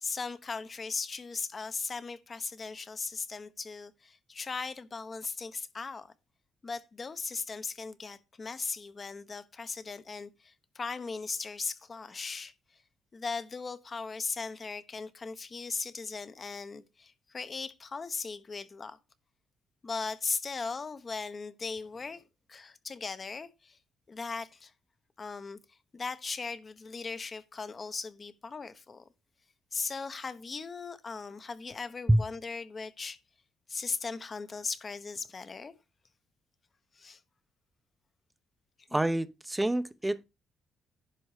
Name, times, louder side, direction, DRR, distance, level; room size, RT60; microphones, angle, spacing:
voice 1, 0.0-6.1 6.6-12.5 13.1-19.0 19.8-22.2 22.5-23.8 24.1-24.7 25.2-25.6 25.9-29.0 29.7-33.2 33.7-35.7 36.9-37.2 38.9-39.0, left 4 dB, 35° left, 1.0 m, -38 dB
voice 2, 38.9-40.2, right 1 dB, 10° right, 0.7 m, -27 dB
11.0 x 5.2 x 5.0 m
cardioid pair, 90°, 0 cm